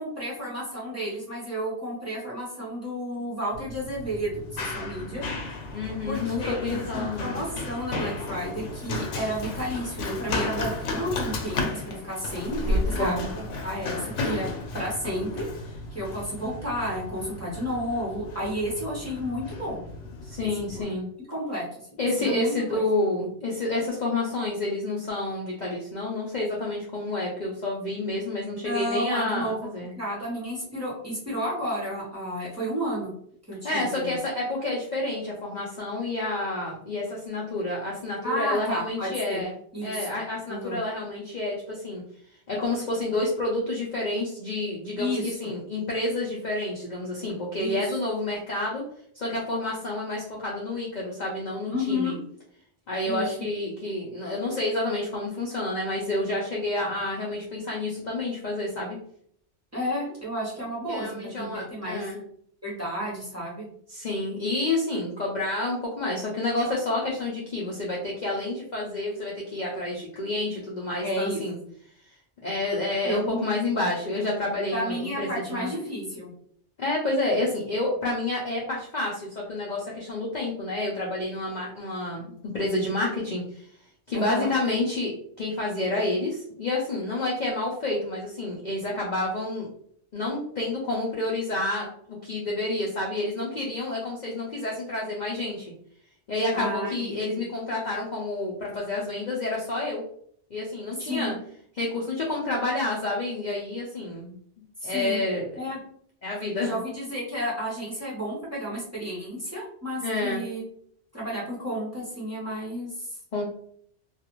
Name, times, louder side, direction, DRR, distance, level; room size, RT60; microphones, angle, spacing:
voice 1, 0.0-5.2 6.1-14.4 14.7-19.8 20.4-20.5 20.7-20.9 21.3-21.8 22.2-22.8 28.6-29.7 30.0-33.1 33.5-34.2 38.2-39.4 39.7-40.0 40.5-40.8 45.0-45.4 47.6-48.0 51.7-52.2 53.0-53.4 59.7-62.0 62.6-63.7 71.0-71.4 73.0-73.5 74.7-76.3 84.1-84.5 96.5-97.4 101.0-101.4 104.8-105.2 105.6-105.8 106.6-110.6 111.1-113.1, equal, 15° right, -7 dB, 0.9 m, -32 dB
Run, 3.5-20.8, left 2 dB, 85° left, 0.9 m, -33 dB
voice 2, 5.7-7.4 12.6-13.3 20.2-21.1 22.0-29.9 33.6-39.5 39.8-42.0 42.5-48.8 49.1-52.1 52.9-59.0 60.9-62.2 63.9-71.6 72.4-75.7 76.8-83.7 84.1-89.7 90.1-95.7 96.3-100.0 100.5-101.3 101.7-104.3 104.8-105.7 106.2-106.8 110.0-110.4 113.3-113.4, left 2 dB, 50° left, -3 dB, 0.6 m, -29 dB
2.4 x 2.4 x 2.9 m, 0.64 s
omnidirectional pair, 1.2 m